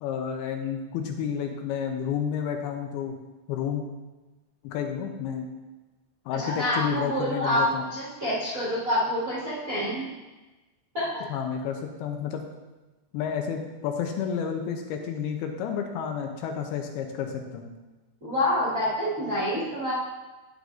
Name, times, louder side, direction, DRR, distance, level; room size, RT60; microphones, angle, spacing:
voice 1, 0.0-3.2 3.5-3.8 4.6-5.5 6.3-7.8 11.3-12.5 13.1-17.7, left 7 dB, 80° left, 3 dB, 2.5 m, -30 dB
voice 2, 6.4-7.6 7.9-10.0 10.9-11.2 18.2-19.9, left 1 dB, 45° right, -10 dB, 1.0 m, -27 dB
9.8 x 8.1 x 2.6 m, 1.1 s
omnidirectional pair, 4.7 m